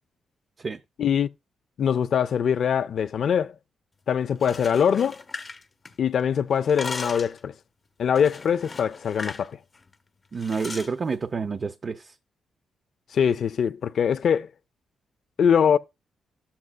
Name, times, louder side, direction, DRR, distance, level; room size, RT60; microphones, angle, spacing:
voice 1, 1.0-1.3 1.8-3.5 4.1-5.2 6.0-7.5 8.0-9.6 13.1-14.5 15.4-15.8, left 7 dB, 60° left, 0.4 m, -23 dB
sound 1, 4.3-6.2 6.5-7.4 8.2-9.5 9.7-9.9 10.4-10.9, left 3 dB, 25° left, 0.8 m, -37 dB
voice 2, 10.3-12.1, right 5 dB, 35° right, 0.5 m, -29 dB
12.5 x 7.3 x 2.3 m
cardioid pair, 130°, 0 cm